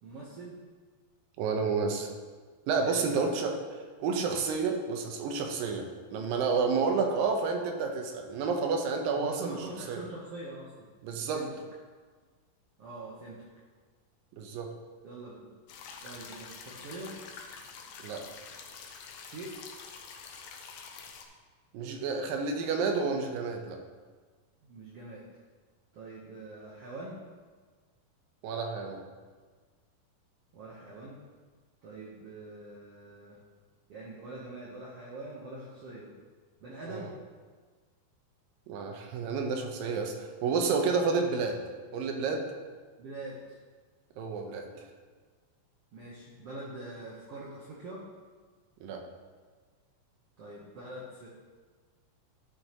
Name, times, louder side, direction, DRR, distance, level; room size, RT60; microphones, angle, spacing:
voice 1, 0.0-0.6 2.8-3.2 9.1-10.9 11.3-11.5 12.8-13.4 15.0-15.5 16.0-17.2 19.2-19.6 24.6-25.3 25.9-27.2 30.5-31.2 31.8-33.4 33.9-36.1 36.6-37.1 43.0-43.6 45.9-48.1 50.4-51.3, right 2 dB, 70° right, -5 dB, 1.4 m, -44 dB
voice 2, 1.4-2.1 2.7-3.6 4.0-9.6 9.9-10.0 11.0-11.4 14.4-14.7 18.0-18.2 21.7-23.8 28.4-29.0 36.9-37.1 38.7-41.6 41.9-42.5 44.2-44.8 48.8-49.1, right 4 dB, 85° right, 3 dB, 2.6 m, -30 dB
sound 1, 15.7-21.2, left 5 dB, 70° left, 1.9 m, -47 dB
11.5 x 6.2 x 3.0 m, 1.5 s
omnidirectional pair, 4.0 m